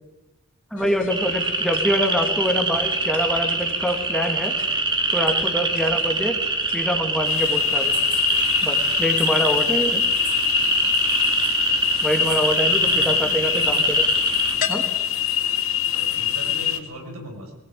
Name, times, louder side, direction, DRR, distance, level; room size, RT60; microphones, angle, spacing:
sound 1, 0.7-14.7, left 6 dB, 45° left, 4.6 m, -41 dB
voice 1, 0.7-4.5 5.1-6.4 6.7-8.0 8.6-10.0 12.0-14.1 14.7-14.9, equal, ahead, 4 dB, 2.0 m, -25 dB
sound 2, 1.1-14.5, right 3 dB, 20° right, 2.3 m, -24 dB
sound 3, 7.2-16.8, left 10 dB, 65° left, 2.2 m, -24 dB
voice 2, 12.7-13.6 15.8-17.5, right 1 dB, 75° right, 2 dB, 6.7 m, -39 dB
22.0 x 19.0 x 9.2 m, 1.0 s
head